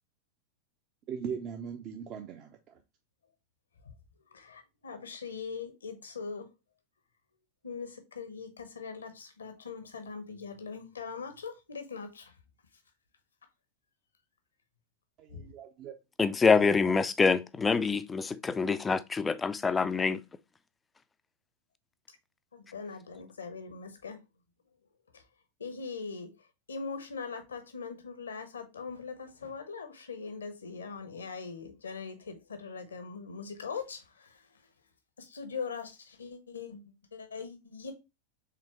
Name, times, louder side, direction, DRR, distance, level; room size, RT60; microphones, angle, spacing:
voice 1, 1.1-2.8 15.2-15.9, right 7 dB, 35° right, 0.5 m, -39 dB
voice 2, 4.3-6.5 7.6-12.3 15.3-15.5 22.5-24.2 25.1-25.2 25.6-26.3 26.7-34.6 35.2-37.9, left 5 dB, 70° left, 0.9 m, -41 dB
voice 3, 16.2-20.2, left 5 dB, 15° left, 0.4 m, -26 dB
5.0 x 3.5 x 2.9 m
figure-of-eight pair, 90°, 0 cm